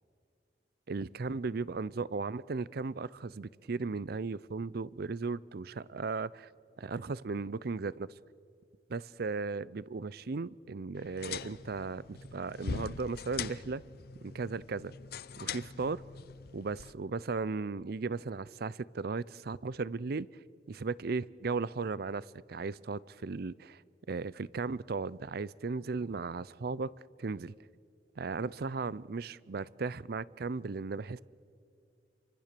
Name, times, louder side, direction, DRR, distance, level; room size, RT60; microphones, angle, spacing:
voice 1, 0.9-6.5 6.8-8.1 8.9-13.8 14.2-14.9 15.4-16.0 16.5-20.3 20.7-23.8 24.1-26.9 27.2-27.5 28.2-31.2, right 4 dB, 55° right, 0.5 m, -36 dB
sound 1, 11.0-16.9, left 5 dB, 55° left, 0.7 m, -42 dB
29.5 x 24.0 x 6.8 m
head